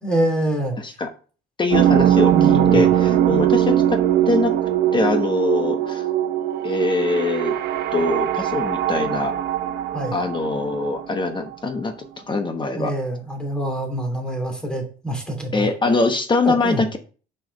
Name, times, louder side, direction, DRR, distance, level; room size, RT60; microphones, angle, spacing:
voice 1, 0.0-0.8 2.3-2.9 9.9-10.2 12.7-15.7 16.4-16.8, right 1 dB, 5° left, 2 dB, 2.8 m, -25 dB
voice 2, 0.8-1.1 1.6-4.0 4.3-4.5 4.9-6.0 6.6-7.5 7.9-9.3 10.1-11.9 12.3-12.9 15.5-17.0, left 3 dB, 30° left, 7 dB, 1.1 m, -23 dB
sound 1, 1.7-11.6, right 11 dB, 75° right, 0.9 m, -20 dB
5.6 x 5.5 x 5.3 m, 0.38 s
cardioid pair, 110°, 17 cm